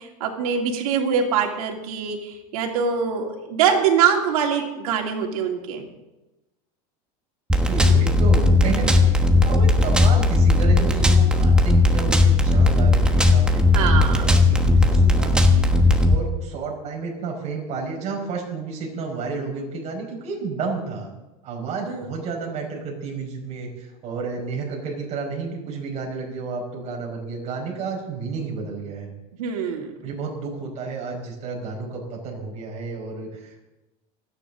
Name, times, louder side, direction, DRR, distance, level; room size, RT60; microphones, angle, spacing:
voice 1, 0.0-5.9 13.7-14.3 21.8-22.1 29.3-30.0, right 7 dB, 90° right, 2 dB, 2.9 m, -23 dB
sound 1, 7.5-16.2, left 2 dB, 5° right, 1.2 m, -17 dB
voice 2, 7.7-9.1 9.4-21.1 21.4-29.1 30.0-33.6, right 4 dB, 40° right, 0 dB, 5.3 m, -31 dB
28.0 x 10.0 x 3.8 m, 1.0 s
supercardioid pair, 145°, 18 cm